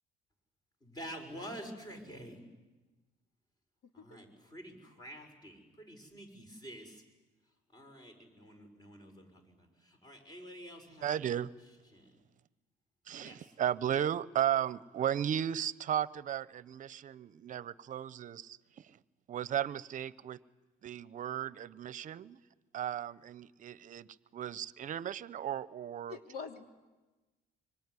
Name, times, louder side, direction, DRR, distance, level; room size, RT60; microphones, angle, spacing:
voice 1, 0.8-2.4 3.9-7.0 7.7-11.2 11.9-12.1 13.2-13.4, equal, 25° left, 5 dB, 6.2 m, -48 dB
voice 2, 11.0-11.5 13.1-18.6 18.8-19.0 19.3-20.4 20.8-22.4 22.7-24.1 24.3-26.2, right 10 dB, 50° right, 17 dB, 0.8 m, -35 dB
voice 3, 26.1-26.6, left 5 dB, 65° left, 5 dB, 3.0 m, -44 dB
24.5 x 24.5 x 9.8 m, 1.2 s
cardioid pair, 110°, 17 cm